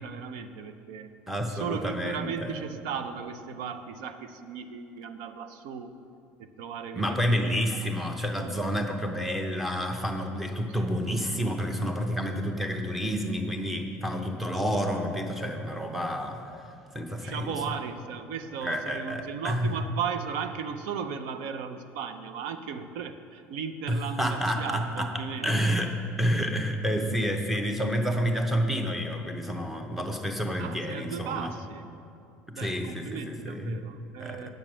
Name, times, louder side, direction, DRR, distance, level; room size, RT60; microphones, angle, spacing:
voice 1, 0.0-1.1 1.5-5.9 6.4-7.7 10.8-10.9 17.2-25.5 30.6-31.9 32.5-34.5, right 6 dB, 80° right, 9 dB, 0.6 m, -36 dB
voice 2, 1.3-2.6 6.9-16.7 16.9-17.5 18.6-19.7 23.9-31.5 32.5-33.8 34.2-34.5, equal, 5° right, 3 dB, 0.8 m, -29 dB
8.9 x 7.8 x 6.2 m, 2.5 s
cardioid pair, 165°, 5 cm